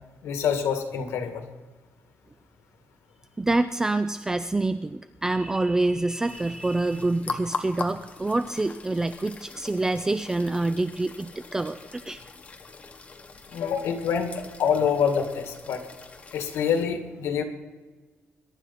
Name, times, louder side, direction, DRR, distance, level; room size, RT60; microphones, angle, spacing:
voice 1, 0.2-1.4 13.5-15.8 16.3-17.4, left 7 dB, 85° left, 5 dB, 1.9 m, -26 dB
voice 2, 3.4-12.2, right 2 dB, 10° right, 11 dB, 0.4 m, -26 dB
sound 1, 6.2-16.8, left 4 dB, 30° left, 1.1 m, -41 dB
22.5 x 11.0 x 4.2 m, 1.3 s
cardioid pair, 155°, 5 cm